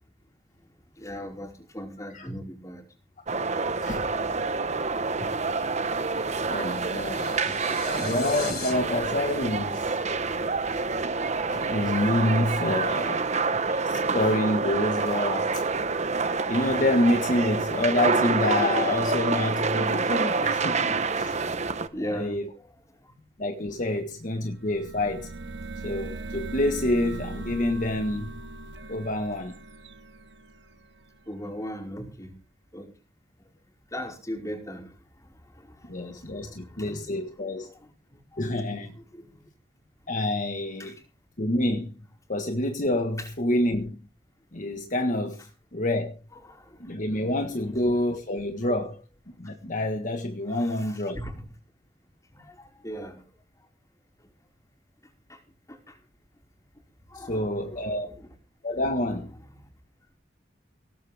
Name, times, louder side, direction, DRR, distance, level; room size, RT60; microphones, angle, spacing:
voice 1, 1.0-2.8 7.0-7.6 7.9-8.0 21.9-22.4 24.0-24.1 31.3-32.3 32.7-32.9 33.9-34.9 36.3-36.4 36.8-37.0 39.1-39.2 40.8-40.9 46.3-46.6 50.5-51.4 52.8-53.2 57.1-58.3, equal, 20° left, 5.0 m, -38 dB
sound 1, 3.3-21.9, right 4 dB, 40° right, 1.2 m, -27 dB
sound 2, 6.1-8.7, left 8 dB, 65° left, 4.3 m, -40 dB
voice 2, 6.5-10.0 11.5-13.3 13.6-15.6 16.5-21.4 22.0-22.5 23.4-25.3 25.8-28.3 28.9-29.5 35.9-37.7 38.4-39.0 40.1-41.0 41.4-41.9 42.3-44.0 44.5-46.1 46.8-49.0 49.4-51.2 57.1-58.1 58.6-59.3, left 1 dB, 50° left, 1.6 m, -27 dB
sound 3, 24.4-31.2, right 2 dB, 75° right, 1.6 m, -39 dB
18.0 x 15.5 x 3.5 m
head